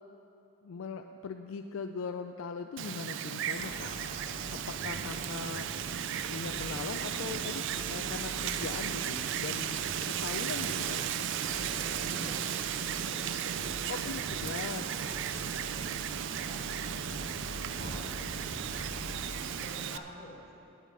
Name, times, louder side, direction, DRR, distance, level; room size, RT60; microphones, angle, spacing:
voice 1, 0.6-3.9 4.5-5.7 6.3-11.1 13.9-14.9, left 5 dB, 65° left, 6 dB, 0.4 m, -40 dB
Wind, 2.8-20.0, right 9 dB, 55° right, 0.3 m, -35 dB
sound 1, 3.5-19.2, equal, 70° right, 2.5 m, -45 dB
sound 2, 3.6-8.1, right 2 dB, 35° right, 0.8 m, -53 dB
voice 2, 11.6-14.1 14.4-20.5, left 1 dB, 30° left, -3 dB, 2.0 m, -52 dB
9.1 x 8.9 x 6.3 m, 2.8 s
head